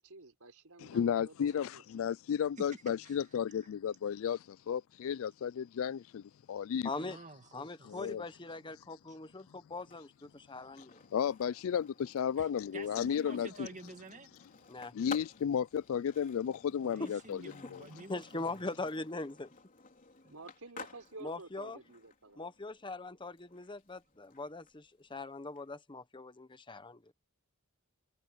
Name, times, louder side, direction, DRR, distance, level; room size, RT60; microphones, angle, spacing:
voice 1, 0.0-1.8 20.3-22.4, right 3 dB, 80° right, 4.2 m, -51 dB
voice 2, 0.8-6.9 7.8-8.2 11.1-13.7 14.9-17.8, left 8 dB, 65° left, 0.3 m, -33 dB
voice 3, 2.7-3.3 6.8-8.1 9.1-9.2 12.4-14.3 16.9-18.8 20.2-20.4, right 2 dB, 35° right, 2.0 m, -51 dB
voice 4, 6.8-7.2 7.5-11.0 14.7-14.9 17.0-17.1 18.1-19.5 21.2-21.8 22.4-27.0, left 3 dB, 20° left, 1.0 m, -41 dB
Skateboard, 9.8-25.6, left 4 dB, 40° left, 3.8 m, -53 dB
head